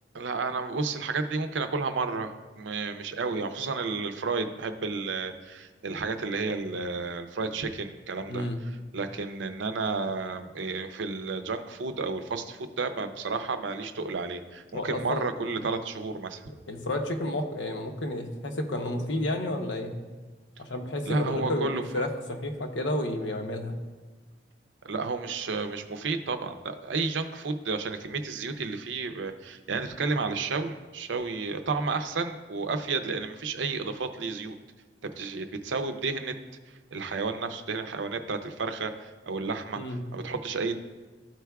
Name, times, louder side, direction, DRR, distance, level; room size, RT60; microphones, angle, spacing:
voice 1, 0.1-8.5 8.9-16.4 21.0-21.8 24.8-34.6 35.2-36.3 36.9-38.9 39.3-39.8 40.1-40.7, right 4 dB, 90° right, 8 dB, 0.6 m, -31 dB
voice 2, 8.3-8.6 14.7-15.2 16.7-20.0 20.6-23.8 39.7-40.1, left 1 dB, 80° left, 4 dB, 0.8 m, -31 dB
13.5 x 4.6 x 2.3 m, 1.3 s
head